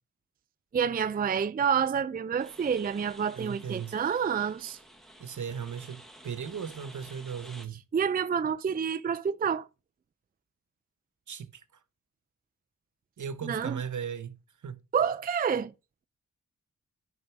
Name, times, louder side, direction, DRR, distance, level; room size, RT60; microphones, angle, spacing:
voice 1, 0.7-4.8 7.9-9.7 13.4-13.8 14.9-15.7, right 7 dB, 30° right, 0.4 m, -28 dB
sound 1, 2.4-7.7, right 1 dB, ahead, 1.5 m, -52 dB
voice 2, 3.3-4.0 5.2-7.8 11.3-11.6 13.2-14.4 14.6-14.8, right 7 dB, 70° right, 1.1 m, -37 dB
6.4 x 5.4 x 6.1 m
cardioid pair, 65°, 31 cm